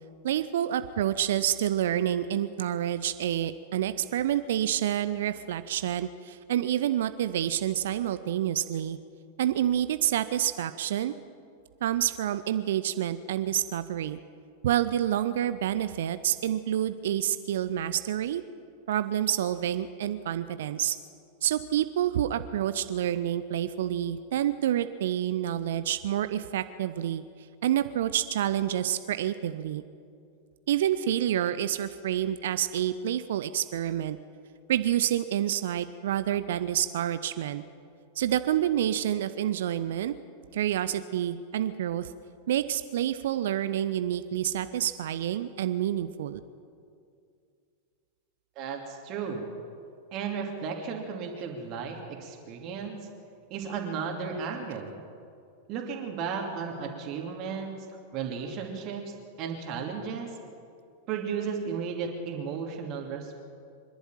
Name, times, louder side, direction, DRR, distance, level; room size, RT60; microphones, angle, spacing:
voice 1, 0.2-9.0 9.4-11.1 11.8-14.2 14.6-18.4 18.9-21.0 21.4-27.2 27.6-29.8 30.7-34.2 34.7-37.6 38.2-40.1 40.5-42.1 42.5-46.4, right 11 dB, 60° right, 12 dB, 0.7 m, -28 dB
voice 2, 48.6-49.4 50.1-53.1 53.5-54.9 55.7-60.3 61.1-63.4, right 6 dB, 40° right, 1 dB, 2.8 m, -34 dB
25.5 x 11.5 x 9.1 m, 2.4 s
figure-of-eight pair, 90°, 0 cm